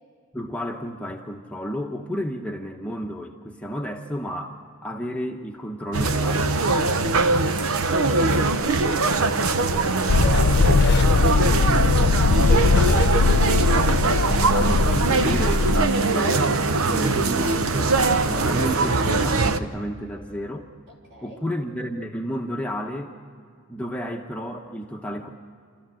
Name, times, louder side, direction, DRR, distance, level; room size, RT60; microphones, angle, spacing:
voice 1, 0.3-7.2 11.4-11.8 14.5-18.0 18.3-20.7 21.2-23.1 23.7-25.3, equal, 5° left, 1 dB, 0.9 m, -32 dB
sound 1, 5.9-19.6, right 3 dB, 75° right, 0.9 m, -22 dB
Car Toyota interior ride fast stops wet snow bumps street, 10.1-15.8, left 4 dB, 50° left, 0.4 m, -20 dB
voice 2, 10.1-13.1 20.9-21.4, equal, 50° right, -3 dB, 5.0 m, -39 dB
28.5 x 13.5 x 7.6 m, 2.3 s
head